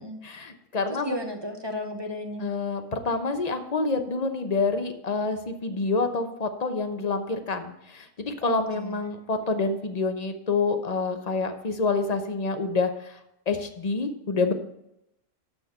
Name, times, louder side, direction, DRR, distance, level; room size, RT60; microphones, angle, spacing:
voice 1, 0.2-1.2 2.4-13.2 13.5-14.5, left 3 dB, 35° left, 7 dB, 0.9 m, -27 dB
voice 2, 0.9-2.5 8.4-9.0, equal, 20° right, 4 dB, 0.9 m, -34 dB
12.5 x 4.4 x 6.8 m, 0.83 s
omnidirectional pair, 1.4 m